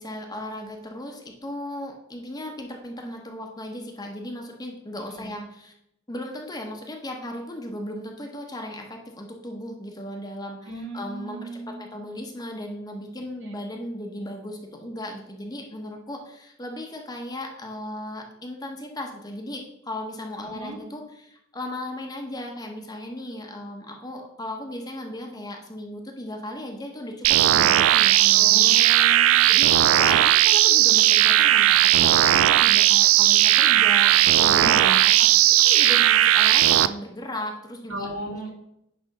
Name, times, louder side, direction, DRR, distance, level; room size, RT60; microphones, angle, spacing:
voice 1, 0.0-5.7 6.1-28.8 29.5-38.1, left 1 dB, 20° left, 2 dB, 1.0 m, -36 dB
voice 2, 10.6-11.8 13.4-13.5 20.4-20.8 28.3-29.5 34.5-35.1 37.9-38.5, right 2 dB, 60° right, -2 dB, 2.4 m, -35 dB
sound 1, 27.2-36.9, right 13 dB, 80° right, 0.3 m, -17 dB
9.9 x 3.5 x 5.4 m, 0.80 s
head